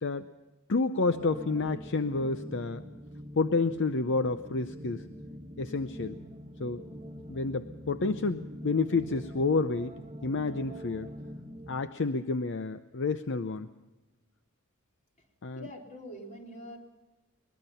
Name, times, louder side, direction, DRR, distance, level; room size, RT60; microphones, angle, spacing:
voice 1, 0.7-2.8 3.4-5.1 5.6-6.2 6.6-6.8 7.3-11.1 11.7-13.7 15.4-15.7, left 3 dB, 60° left, 10 dB, 0.7 m, -29 dB
sound 1, 1.1-11.7, equal, 25° right, 1.5 m, -44 dB
voice 2, 15.6-16.8, equal, 35° left, 1 dB, 3.6 m, -44 dB
22.5 x 20.5 x 5.6 m, 1.1 s
head